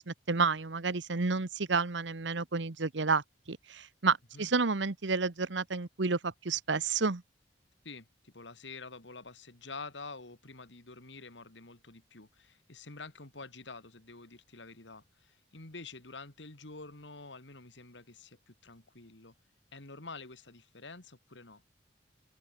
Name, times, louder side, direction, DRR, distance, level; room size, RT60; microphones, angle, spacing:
voice 1, 0.0-7.2, right 4 dB, 75° right, 1.1 m, -30 dB
voice 2, 7.8-19.3 19.7-21.6, left 3 dB, 75° left, 2.7 m, -48 dB
open air
head